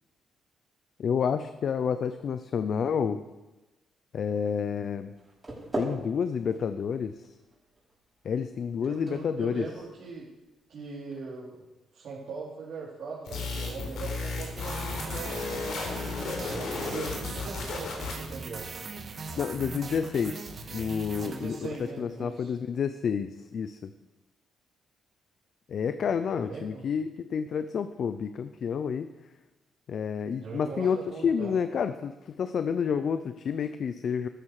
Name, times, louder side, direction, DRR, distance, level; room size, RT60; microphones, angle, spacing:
voice 1, 1.0-3.2 4.1-5.1 5.7-7.3 8.2-9.7 19.4-23.9 25.7-29.1 29.9-34.3, left 7 dB, 55° left, 11 dB, 0.7 m, -29 dB
sound 1, 5.1-11.0, right 2 dB, 20° right, 5.6 m, -42 dB
voice 2, 8.8-10.3 10.7-11.7 11.9-16.0 16.5-18.7 21.2-22.5 26.5-26.8 30.4-31.5, right 4 dB, 60° right, -7 dB, 4.3 m, -40 dB
sound 2, 13.3-18.3, left 3 dB, 80° left, 4.3 m, -34 dB
sound 3, 14.5-22.0, right 4 dB, 45° right, 1.9 m, -40 dB
13.5 x 13.0 x 5.0 m, 1.1 s
cardioid pair, 90°, 0 cm